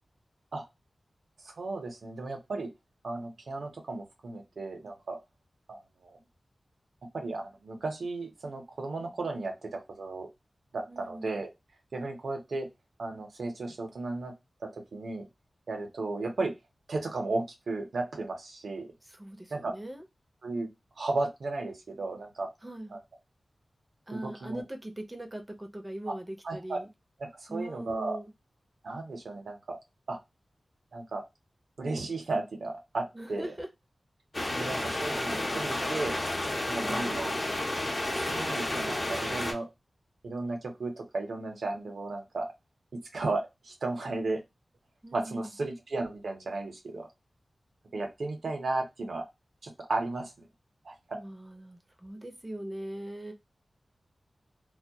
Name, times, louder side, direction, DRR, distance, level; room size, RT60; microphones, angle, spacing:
voice 1, 1.4-2.7 3.0-5.2 5.7-6.2 7.1-10.3 10.7-11.5 11.9-12.7 13.0-14.3 14.7-15.3 15.7-16.5 16.9-18.9 19.5-19.7 20.4-20.7 21.0-22.5 22.9-23.0 24.1-24.6 26.1-26.2 26.4-26.8 27.2-28.2 28.8-29.8 30.1-30.2 30.9-31.2 31.8-33.5 34.5-36.2 36.7-37.3 38.1-39.7 40.2-42.5 42.9-44.4 45.1-47.1 47.9-49.2 49.6-50.5 50.8-51.2, right 2 dB, 85° right, 4 dB, 0.7 m, -34 dB
voice 2, 10.9-11.3 19.0-20.0 22.6-23.0 24.1-26.9 27.5-28.3 33.1-33.7 36.7-37.2 45.0-45.5 51.1-53.3, right 1 dB, 20° right, 4 dB, 0.5 m, -41 dB
sound 1, 34.3-39.5, left 1 dB, 35° left, 0.6 m, -31 dB
2.2 x 2.1 x 2.7 m, 0.21 s
wide cardioid pair, 90°, 0 cm